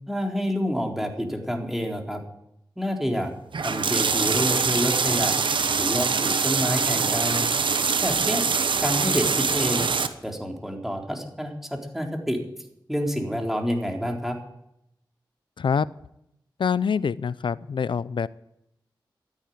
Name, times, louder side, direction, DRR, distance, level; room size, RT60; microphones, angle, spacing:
voice 1, 0.1-2.2 2.8-3.3 3.6-5.3 5.8-7.4 8.0-8.4 8.8-9.9 10.2-12.4 12.9-14.4, equal, 5° right, 1 dB, 3.8 m, -28 dB
sound 1, 3.5-10.1, right 5 dB, 75° right, 1.0 m, -24 dB
voice 2, 16.6-18.3, left 6 dB, 75° left, 19 dB, 0.5 m, -25 dB
13.5 x 9.7 x 9.4 m, 0.80 s
cardioid pair, 40°, 8 cm